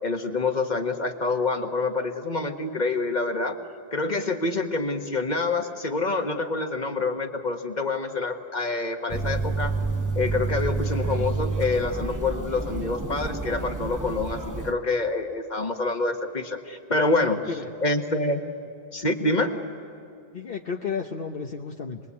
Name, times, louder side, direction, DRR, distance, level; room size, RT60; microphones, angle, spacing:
voice 1, 0.0-3.6 3.9-9.7 10.1-18.4 18.9-19.5, left 3 dB, 45° left, 5 dB, 1.6 m, -27 dB
sound 1, 9.1-14.7, right 3 dB, 20° right, 1.1 m, -29 dB
voice 2, 17.3-17.7 20.3-22.0, left 5 dB, 60° left, 2 dB, 1.1 m, -32 dB
26.5 x 21.0 x 8.5 m, 2.6 s
omnidirectional pair, 1.1 m